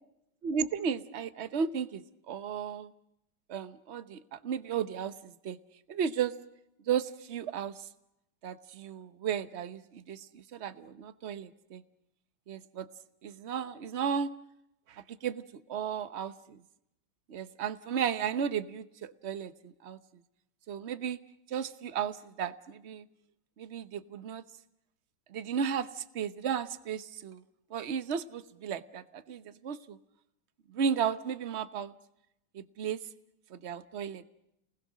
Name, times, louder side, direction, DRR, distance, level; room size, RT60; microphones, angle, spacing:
voice 1, 0.4-2.0 2.3-2.9 3.5-5.6 5.9-6.3 6.9-7.7 8.4-11.8 12.5-12.9 13.2-14.3 14.9-15.4 15.7-16.6 17.3-20.0 20.7-21.2 21.5-23.0 23.6-24.4 25.3-27.4 27.7-30.0 30.7-31.9 32.5-33.0 33.5-34.3, right 7 dB, 45° right, 13 dB, 1.0 m, -34 dB
30.0 x 20.0 x 6.3 m, 0.83 s
omnidirectional pair, 2.2 m